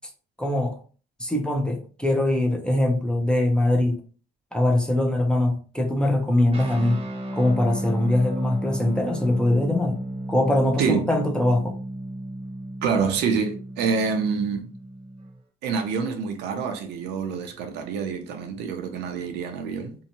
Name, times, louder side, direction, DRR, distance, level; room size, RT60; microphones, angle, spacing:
voice 1, 0.4-0.8 1.2-4.0 4.5-7.0 7.3-10.0 10.3-11.8, left 1 dB, 5° left, 0.5 m, -22 dB
sound 1, 6.5-15.4, right 1 dB, 35° right, 0.8 m, -34 dB
voice 2, 10.8-11.1 12.8-14.7 15.6-20.0, right 5 dB, 80° right, 0.6 m, -26 dB
2.7 x 2.2 x 2.8 m
cardioid pair, 110°, 17 cm